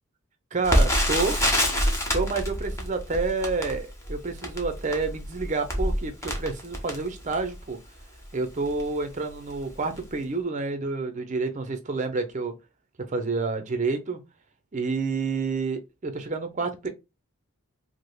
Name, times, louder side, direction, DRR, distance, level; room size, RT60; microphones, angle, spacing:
voice 1, 0.5-1.4 2.1-7.8 8.3-12.5 13.0-14.2 14.7-16.9, right 4 dB, 35° right, 0.5 m, -29 dB
Crackle, 0.6-7.6 8.2-8.3 8.6-8.9 9.5-9.7 10.0-10.1, equal, 15° left, 0.7 m, -26 dB
5.1 x 2.0 x 2.2 m
head